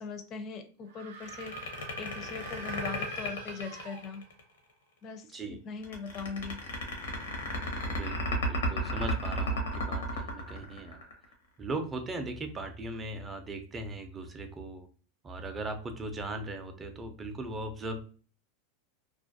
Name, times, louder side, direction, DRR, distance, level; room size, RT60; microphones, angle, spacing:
voice 1, 0.0-1.5 2.0-4.2 5.0-5.4 5.6-6.6, left 5 dB, 40° left, 8 dB, 0.4 m, -40 dB
sound 1, 0.9-4.5, right 6 dB, 80° right, 0.6 m, -47 dB
sound 2, 1.2-4.4 5.8-11.3, left 1 dB, 85° left, 0.7 m, -33 dB
voice 2, 7.9-11.1 11.6-14.9 15.2-18.0, right 2 dB, 20° right, 6 dB, 0.4 m, -38 dB
2.4 x 2.2 x 2.5 m, 0.40 s
hypercardioid pair, 120°, 0 cm